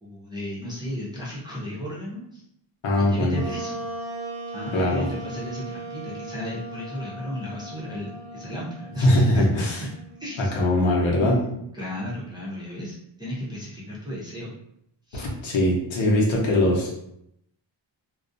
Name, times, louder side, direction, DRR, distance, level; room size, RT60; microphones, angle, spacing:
voice 1, 0.0-2.4 3.1-3.7 4.5-9.1 9.3-9.7 10.2-10.8 11.1-14.5 15.1-15.3, left 1 dB, 10° right, -8 dB, 0.6 m, -34 dB
voice 2, 2.8-3.4 4.7-5.0 9.0-9.8 10.4-11.4 15.1-17.0, left 1 dB, 75° left, -2 dB, 0.8 m, -21 dB
Wind instrument woodwind instrument, 3.3-10.8, right 2 dB, 60° right, 0.5 m, -38 dB
2.4 x 2.1 x 2.6 m, 0.76 s
wide cardioid pair, 150°, 46 cm